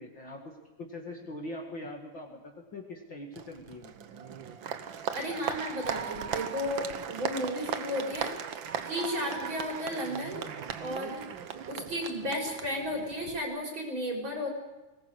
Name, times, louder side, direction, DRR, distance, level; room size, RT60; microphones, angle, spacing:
voice 1, 0.0-3.9, left 1 dB, 40° left, 1 dB, 2.6 m, -42 dB
Applause, 3.3-13.4, right 8 dB, 60° right, 1.3 m, -38 dB
voice 2, 5.1-8.3 8.8-10.4 10.8-11.2 11.7-14.5, equal, 40° right, 0 dB, 5.6 m, -33 dB
21.5 x 19.5 x 8.0 m, 1.1 s
omnidirectional pair, 3.5 m